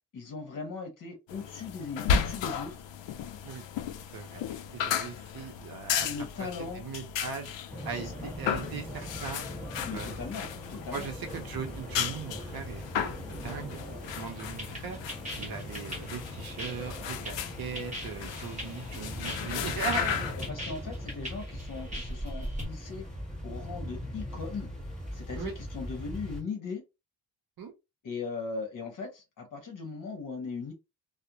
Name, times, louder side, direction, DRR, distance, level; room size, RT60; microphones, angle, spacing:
voice 1, 0.1-2.8 6.0-6.8 7.9-8.3 9.8-11.1 20.3-23.1 23.4-24.7 25.1-26.8 28.0-30.7, left 4 dB, 45° left, 1.0 m, -39 dB
sound 1, 1.3-20.5, left 8 dB, 75° left, 0.5 m, -35 dB
voice 2, 4.7-6.1 6.4-7.5 7.8-9.5 9.9-10.3 10.9-13.8 14.2-15.0 15.4-20.3 25.4-25.5 27.6-27.7, right 6 dB, 55° right, 0.7 m, -39 dB
sound 2, 7.7-26.4, equal, ahead, 1.4 m, -41 dB
sound 3, 14.1-22.7, equal, 15° right, 1.0 m, -40 dB
2.4 x 2.1 x 2.9 m
wide cardioid pair, 170°, 44 cm